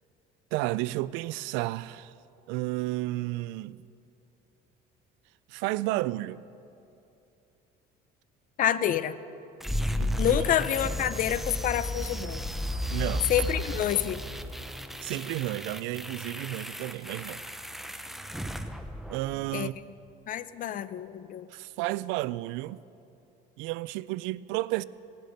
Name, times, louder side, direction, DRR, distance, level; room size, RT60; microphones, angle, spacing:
voice 1, 0.5-2.1 2.5-3.8 5.5-6.4 10.0-10.4 12.9-13.3 15.0-17.4 19.1-19.8 21.5-22.8 23.6-24.8, right 18 dB, 85° right, 0.4 m, -32 dB
voice 2, 8.6-9.2 10.2-12.4 13.3-14.2 19.5-19.7 20.3-21.5, left 10 dB, 45° left, 0.6 m, -28 dB
sound 1, 9.6-19.6, left 1 dB, ahead, 0.6 m, -34 dB
18.0 x 12.0 x 5.2 m
cardioid pair, 125°, 19 cm